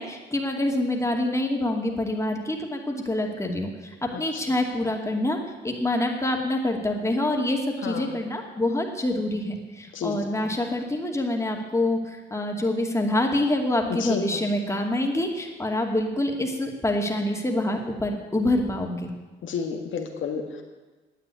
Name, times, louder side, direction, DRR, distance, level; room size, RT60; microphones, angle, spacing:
voice 1, 0.0-5.4 5.6-19.1, left 1 dB, 15° left, 1 dB, 2.4 m, -26 dB
voice 2, 13.9-14.4 19.4-20.6, left 6 dB, 75° left, 4 dB, 1.7 m, -30 dB
9.9 x 8.9 x 9.7 m, 1.2 s
cardioid pair, 80°, 20 cm